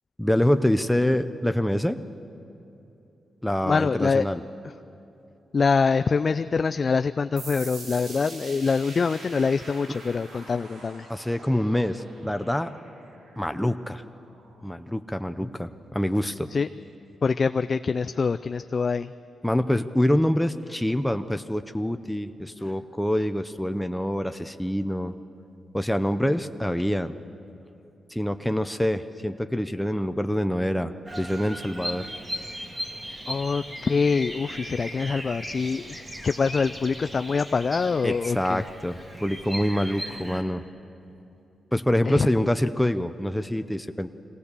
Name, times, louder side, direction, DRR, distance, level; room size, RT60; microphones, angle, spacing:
voice 1, 0.2-2.0 3.4-4.4 11.1-12.7 13.4-14.0 14.6-16.5 19.4-25.1 25.7-27.2 28.1-32.1 38.0-40.6 41.7-44.1, left 1 dB, 5° left, 8 dB, 0.6 m, -26 dB
voice 2, 3.6-4.3 5.5-11.1 16.5-16.7 17.2-19.1 33.3-35.8 36.2-38.6 42.1-42.3, left 5 dB, 45° left, 10 dB, 0.4 m, -24 dB
sound 1, 7.4-14.7, right 2 dB, 85° right, 3.5 m, -45 dB
Bird vocalization bird call bird song, 31.1-40.4, equal, 25° right, 2.7 m, -37 dB
23.5 x 18.0 x 6.8 m, 2.9 s
cardioid pair, 85°, 0 cm